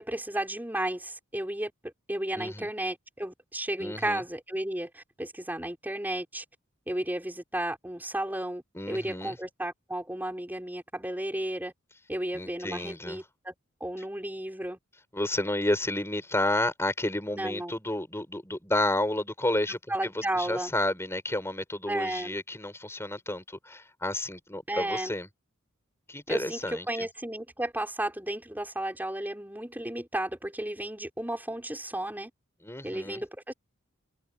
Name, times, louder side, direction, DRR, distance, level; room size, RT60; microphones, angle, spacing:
voice 1, 0.0-6.4 6.9-11.7 12.1-13.5 13.8-14.8 17.3-17.7 19.9-20.7 21.9-22.4 24.7-25.1 26.3-32.3 32.8-33.5, right 1 dB, 10° right, 5.7 m, -33 dB
voice 2, 2.3-2.7 3.8-4.2 8.7-9.3 12.3-13.2 15.1-25.3 26.1-27.1 32.6-33.2, left 1 dB, 15° left, 6.0 m, -31 dB
head